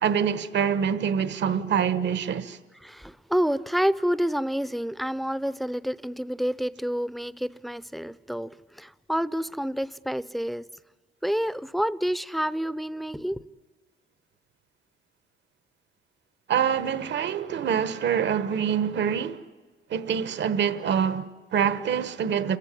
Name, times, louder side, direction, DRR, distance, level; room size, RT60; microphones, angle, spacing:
voice 1, 0.0-2.6 16.5-19.4 19.9-22.6, right 8 dB, 65° right, 1.2 m, -25 dB
voice 2, 2.8-10.6 11.2-13.4, equal, ahead, 0.6 m, -28 dB
28.5 x 15.0 x 9.9 m
cardioid pair, 90°, 20 cm